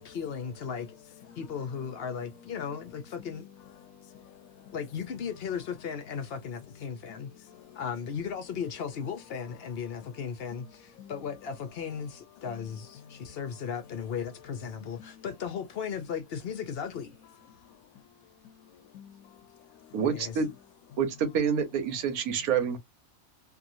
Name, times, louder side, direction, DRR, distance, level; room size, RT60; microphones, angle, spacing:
voice 1, 0.0-1.0 1.4-3.5 4.7-7.3 7.7-17.1 20.1-20.4, left 7 dB, 55° left, 0.7 m, -36 dB
voice 2, 0.7-2.3 3.2-4.8 6.7-7.8 9.9-11.1 12.3-12.6 12.9-13.7 14.4-15.3 17.5-20.0 22.4-22.5, left 8 dB, 80° left, 1.0 m, -53 dB
voice 3, 19.9-20.5 21.0-22.8, right 7 dB, 90° right, 1.3 m, -27 dB
2.8 x 2.7 x 2.6 m
omnidirectional pair, 1.5 m